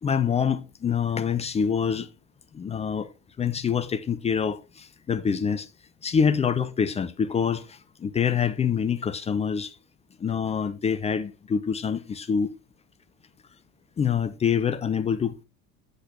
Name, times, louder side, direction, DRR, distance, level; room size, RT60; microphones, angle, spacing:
voice 1, 0.0-2.1 2.5-3.1 3.4-5.7 6.0-9.8 10.2-12.5 14.0-15.4, left 7 dB, 15° left, 0.5 m, -26 dB
7.8 x 5.3 x 4.3 m
figure-of-eight pair, 65°, 41 cm